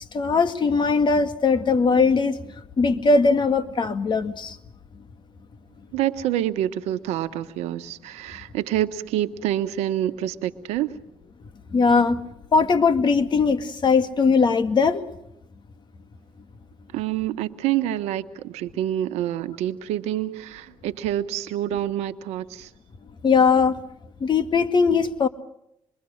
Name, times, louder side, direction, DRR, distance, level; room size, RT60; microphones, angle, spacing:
voice 1, 0.1-2.5 2.8-4.6 11.7-12.2 12.5-15.0 23.2-23.8 24.2-25.3, left 4 dB, 45° left, 2.0 m, -20 dB
voice 2, 5.9-11.0 16.9-22.7, right 12 dB, 80° right, 1.2 m, -27 dB
26.0 x 23.0 x 6.5 m
supercardioid pair, 70°, 11 cm